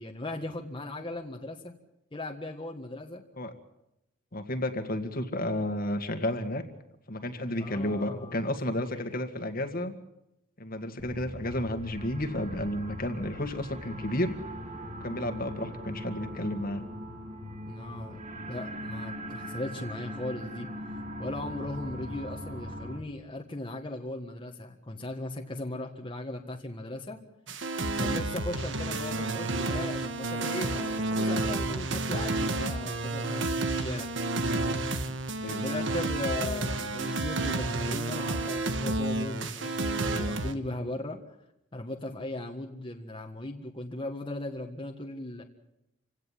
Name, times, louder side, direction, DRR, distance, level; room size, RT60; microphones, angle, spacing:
voice 1, 0.0-1.7 2.1-3.2 7.6-8.5 8.9-9.1 17.7-18.2 18.5-20.7 21.2-27.2 28.0-34.1 35.4-41.2 41.7-45.4, left 1 dB, 25° left, 2 dB, 1.6 m, -38 dB
voice 2, 4.3-6.6 7.1-9.9 10.6-14.3 15.0-16.8 35.4-35.6, left 1 dB, 50° left, 7 dB, 2.0 m, -32 dB
sound 1, 11.0-23.0, equal, 40° right, 2.2 m, -40 dB
sound 2, 27.5-40.5, right 2 dB, 75° right, 1.5 m, -30 dB
28.0 x 17.0 x 7.7 m, 0.87 s
head